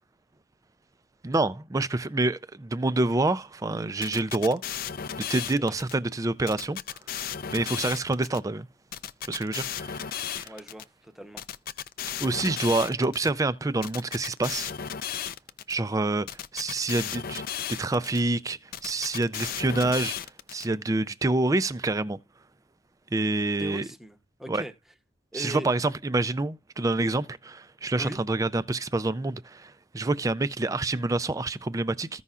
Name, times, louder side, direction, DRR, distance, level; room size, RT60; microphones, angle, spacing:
voice 1, 1.2-4.6 5.3-6.8 7.5-8.7 9.2-10.5 12.2-14.7 15.7-16.3 16.5-17.4 17.8-22.2 23.1-23.9 24.5-24.6 25.3-32.2, right 2 dB, 20° right, 0.4 m, -27 dB
sound 1, 4.0-5.9 6.5-8.4 8.9-10.8 11.4-13.3 13.8-15.7 16.3-18.2 18.7-20.6, left 9 dB, 50° left, 0.4 m, -34 dB
voice 2, 10.4-11.5 23.6-24.7 25.3-25.7 28.0-28.2, equal, ahead, 0.8 m, -39 dB
15.0 x 5.5 x 2.4 m
head